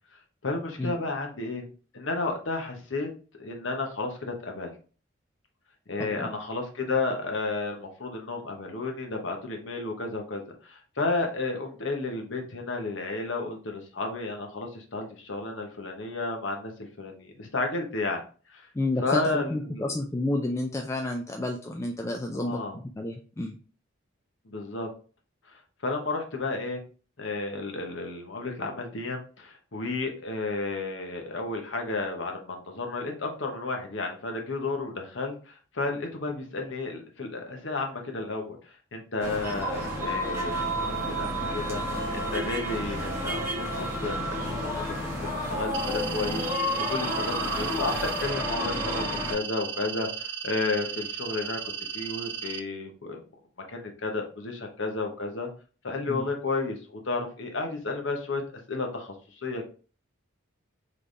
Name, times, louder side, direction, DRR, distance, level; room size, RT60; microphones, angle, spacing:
voice 1, 0.4-1.6 1.9-3.1 3.4-4.7 5.9-18.2 18.5-18.7 19.0-19.9 22.3-22.8 24.4-24.9 25.5-26.8 27.2-46.4 46.8-47.9 48.2-51.6 51.9-53.2 53.7-55.5 55.8-58.4 58.7-59.6, left 3 dB, 65° left, 2 dB, 1.0 m, -32 dB
voice 2, 6.0-6.3 18.7-23.6 56.1-56.3, left 1 dB, 15° left, 3 dB, 0.3 m, -30 dB
sound 1, 39.2-49.3, equal, 15° right, 1.2 m, -30 dB
sound 2, 45.7-52.6, right 8 dB, 60° right, 0.4 m, -36 dB
4.0 x 3.4 x 3.3 m, 0.38 s
head